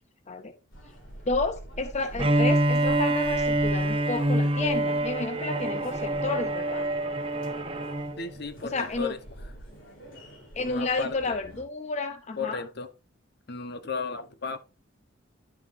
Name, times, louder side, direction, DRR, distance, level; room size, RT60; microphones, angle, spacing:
sound 1, 0.7-11.6, right 1 dB, 80° left, 3.6 m, -45 dB
voice 1, 1.3-6.9 8.6-9.1 10.6-12.6, left 3 dB, 35° left, 0.6 m, -31 dB
Bowed string instrument, 2.2-8.2, right 1 dB, 30° right, 1.1 m, -26 dB
voice 2, 8.2-9.6 10.6-11.4 12.4-12.9 13.5-14.6, left 5 dB, 60° left, 1.0 m, -35 dB
11.0 x 7.1 x 2.6 m
head